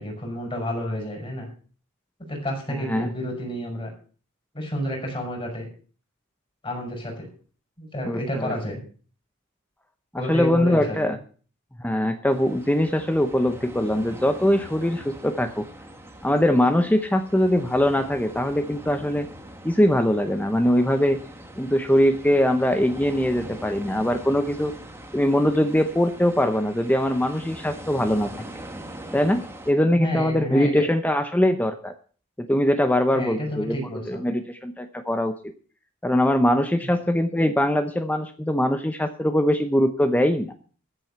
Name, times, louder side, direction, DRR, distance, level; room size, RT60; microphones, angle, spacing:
voice 1, 0.0-1.5 2.3-3.9 4.5-5.7 6.6-7.3 7.8-8.8 10.2-11.2 30.0-30.8 33.1-34.3, equal, 25° left, 1 dB, 5.7 m, -30 dB
voice 2, 2.8-3.1 8.0-8.5 10.1-11.2 11.8-15.7 16.2-19.3 19.6-21.2 21.6-24.7 25.1-28.3 29.1-32.0 32.4-33.8 34.1-35.3 36.0-40.5, left 1 dB, 5° left, 8 dB, 0.7 m, -22 dB
sound 1, 12.3-29.7, right 1 dB, 10° right, 1.6 m, -42 dB
14.0 x 7.5 x 6.8 m, 0.41 s
head